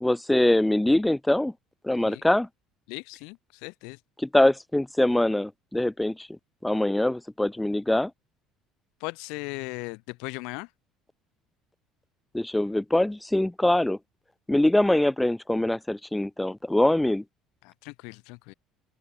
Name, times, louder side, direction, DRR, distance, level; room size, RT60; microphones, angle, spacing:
voice 1, 0.0-1.5 1.8-2.5 4.2-6.3 6.6-8.1 12.3-14.0 14.5-17.2, left 1 dB, 5° left, 0.5 m, -23 dB
voice 2, 2.9-4.0 9.0-10.7 17.6-18.5, left 30 dB, 85° left, 4.5 m, -38 dB
open air
cardioid pair, 125°, 0 cm